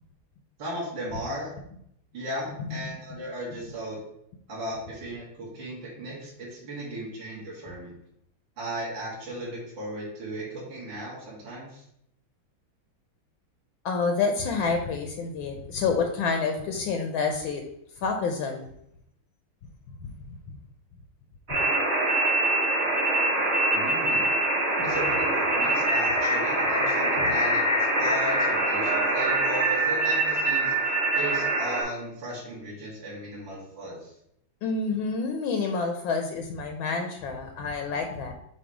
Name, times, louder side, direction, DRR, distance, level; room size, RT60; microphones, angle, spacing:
voice 1, 0.6-1.5 2.1-4.0 4.5-7.9 8.6-11.8 23.7-24.3 24.8-34.1, right 1 dB, 60° right, -7 dB, 2.4 m, -36 dB
voice 2, 13.8-17.6 18.0-18.7 20.0-20.1 20.5-20.6 34.6-38.3, left 4 dB, 75° left, 4 dB, 1.4 m, -28 dB
sound 1, 21.5-31.8, right 2 dB, 30° right, 1.6 m, -24 dB
7.0 x 2.8 x 4.7 m, 0.74 s
omnidirectional pair, 2.4 m